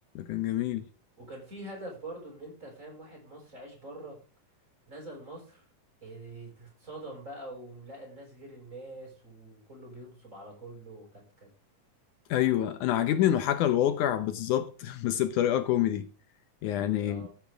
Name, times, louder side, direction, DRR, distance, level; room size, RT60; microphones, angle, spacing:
voice 1, 0.2-0.8 12.3-16.1 16.6-17.3, left 11 dB, 75° left, 2.3 m, -27 dB
voice 2, 1.2-4.2 4.9-5.6 6.0-11.5 12.9-13.0 17.0-17.3, right 1 dB, 20° right, 6.1 m, -45 dB
14.5 x 8.2 x 3.5 m
omnidirectional pair, 3.7 m